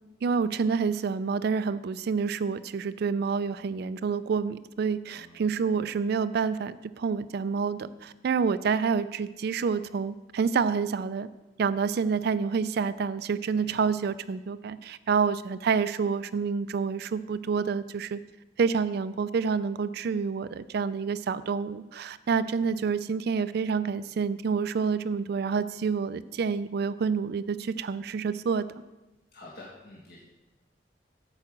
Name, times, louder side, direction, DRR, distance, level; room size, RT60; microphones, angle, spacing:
voice 1, 0.2-11.3 11.6-18.2 18.6-28.6, right 5 dB, 60° right, 14 dB, 0.3 m, -28 dB
voice 2, 5.1-5.5 13.6-13.8 22.6-22.7 29.3-30.2, left 2 dB, 60° left, -5 dB, 1.6 m, -48 dB
8.8 x 4.9 x 7.2 m, 1.1 s
head